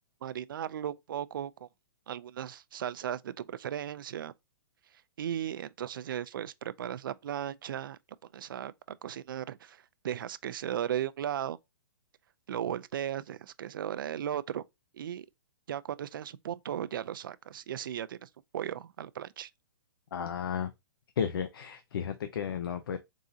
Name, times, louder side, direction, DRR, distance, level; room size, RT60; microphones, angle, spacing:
voice 1, 0.2-1.7 2.1-4.3 5.2-8.0 8.3-11.6 12.5-14.6 14.9-15.3 15.7-19.5, right 10 dB, 60° right, 0.4 m, -36 dB
voice 2, 20.1-20.7 21.2-23.0, left 7 dB, 70° left, 0.6 m, -33 dB
4.0 x 3.6 x 2.7 m
hypercardioid pair, 170°, 12 cm